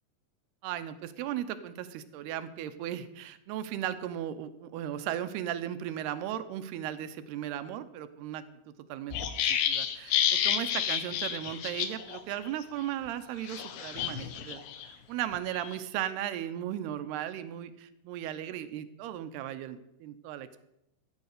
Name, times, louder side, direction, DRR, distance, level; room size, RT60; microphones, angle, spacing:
voice 1, 0.6-9.2 9.7-20.6, right 11 dB, 80° right, 11 dB, 2.7 m, -36 dB
sound 1, 9.1-12.2 12.5-12.6 13.5-14.9 15.3-15.8, left 9 dB, 75° left, 2.9 m, -30 dB
14.0 x 9.4 x 6.5 m, 0.85 s
omnidirectional pair, 4.8 m